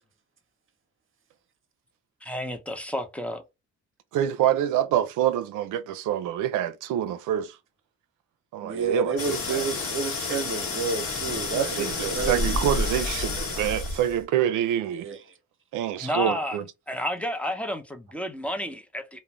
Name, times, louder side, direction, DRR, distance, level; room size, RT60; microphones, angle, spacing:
voice 1, 2.2-3.4 16.0-16.6 16.9-19.2, left 1 dB, 5° left, 0.6 m, -31 dB
voice 2, 4.1-7.5 8.5-9.6 11.5-15.1 15.7-16.6, right 11 dB, 85° right, 0.5 m, -26 dB
voice 3, 8.6-12.6 14.9-15.3, right 4 dB, 45° right, 0.8 m, -30 dB
sound 1, 9.2-14.2, left 3 dB, 50° left, 0.9 m, -30 dB
2.5 x 2.1 x 3.0 m
cardioid pair, 90°, 30 cm